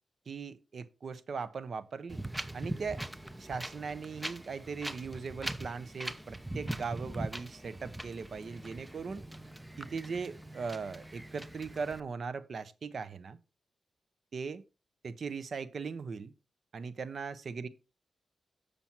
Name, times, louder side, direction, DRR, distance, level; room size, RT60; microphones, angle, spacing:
voice 1, 0.3-2.2 2.5-3.0 3.4-9.3 9.8-13.4 14.3-14.6 15.0-16.3 16.7-17.7, right 5 dB, 65° right, 0.9 m, -39 dB
Wind, 2.1-12.0, right 1 dB, 10° right, 0.7 m, -42 dB
7.3 x 6.9 x 4.5 m
cardioid pair, 70°, 0 cm